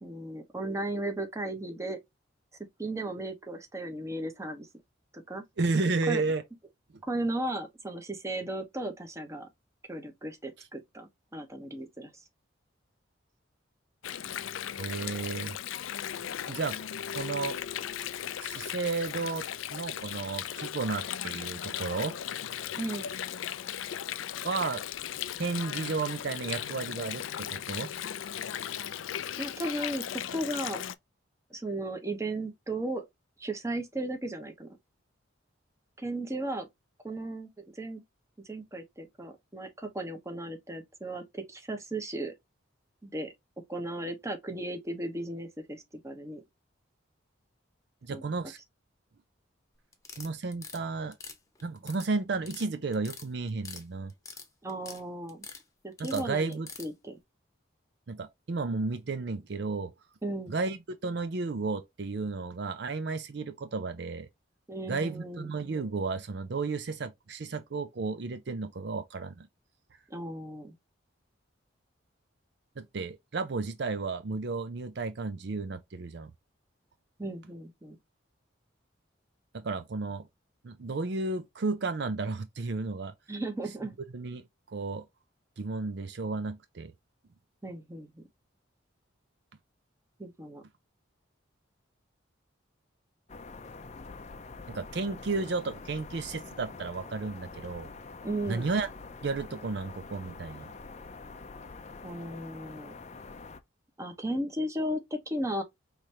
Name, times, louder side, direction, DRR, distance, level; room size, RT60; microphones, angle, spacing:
voice 1, 0.0-2.0 2.8-4.7 5.1-5.4 6.1-6.2 7.1-9.5 9.9-12.2 22.8-23.1 29.4-30.8 31.5-33.0 33.4-34.8 36.0-36.7 37.0-38.0 38.4-42.3 43.0-43.3 43.7-46.4 48.1-48.2 54.6-55.5 55.8-57.2 60.2-60.5 64.7-65.5 70.1-70.7 77.2-78.0 83.3-84.0 87.6-88.2 90.2-90.6 98.2-98.7 102.0-102.9 104.0-105.6, right 1 dB, 15° right, 0.9 m, -35 dB
voice 2, 5.6-6.4 14.8-15.6 16.5-16.8 17.1-17.6 18.4-22.2 24.4-24.8 25.4-27.9 48.0-48.6 50.2-51.2 51.6-54.1 56.0-56.7 58.1-59.9 60.5-64.3 64.9-69.5 72.8-76.3 79.5-80.3 80.6-83.1 84.1-84.4 84.7-85.0 85.6-86.9 94.7-97.9 98.5-98.9 99.2-100.7, right 3 dB, 60° right, 0.5 m, -33 dB
Water, 14.0-31.0, left 10 dB, 85° left, 0.4 m, -37 dB
sound 1, 49.9-50.8 51.1-52.1 52.3-52.7 52.9-53.8 54.1-55.0 55.3-55.6 56.0-56.9, left 5 dB, 15° left, 0.9 m, -44 dB
sound 2, 93.3-103.6, left 3 dB, 35° left, 0.5 m, -46 dB
5.1 x 3.1 x 2.8 m
head